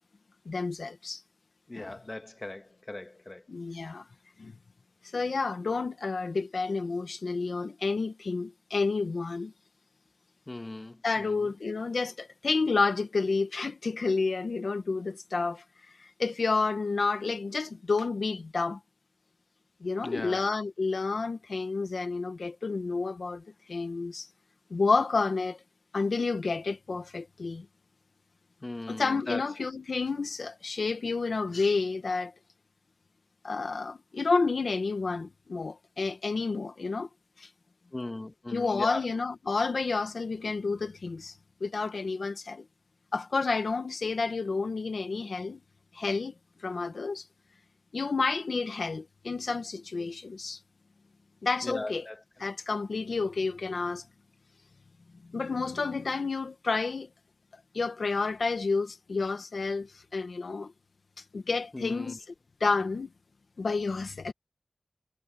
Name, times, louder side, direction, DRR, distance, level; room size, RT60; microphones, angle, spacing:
voice 1, 0.4-1.2 1.7-1.9 3.5-4.0 4.4-4.5 5.1-9.5 11.0-15.6 16.0-18.8 19.8-23.4 23.7-24.3 24.7-25.6 25.9-27.6 28.9-32.3 33.4-37.1 37.4-37.5 38.5-41.3 41.6-42.6 43.1-45.6 45.9-46.3 46.6-47.2 47.9-50.6 51.4-52.0 52.4-54.0 55.3-57.1 57.7-60.7 61.3-62.2 62.6-63.1 63.6-64.3, left 4 dB, 80° left, 1.4 m, -30 dB
voice 2, 1.7-3.4 10.5-11.5 20.0-20.4 28.6-29.4 37.9-39.1 51.6-52.2 61.7-62.2, left 2 dB, 35° left, 1.9 m, -38 dB
wide cardioid pair, 70°, 0 cm